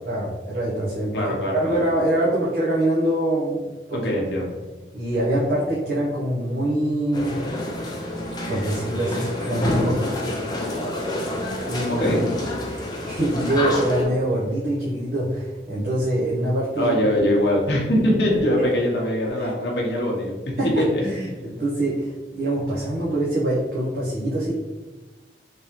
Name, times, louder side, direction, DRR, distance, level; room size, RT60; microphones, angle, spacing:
voice 1, 0.0-4.1 4.9-7.4 8.5-10.2 11.7-12.1 12.7-17.0 18.3-18.4 19.4-19.5 20.6-24.5, right 1 dB, 55° right, -7 dB, 0.7 m, -24 dB
voice 2, 1.1-1.7 3.9-4.5 12.0-12.2 16.8-20.3 20.8-21.0, equal, 75° left, -2 dB, 0.8 m, -22 dB
sound 1, 7.1-14.0, left 1 dB, 25° left, 0.5 m, -28 dB
3.4 x 3.0 x 2.8 m, 1.2 s
head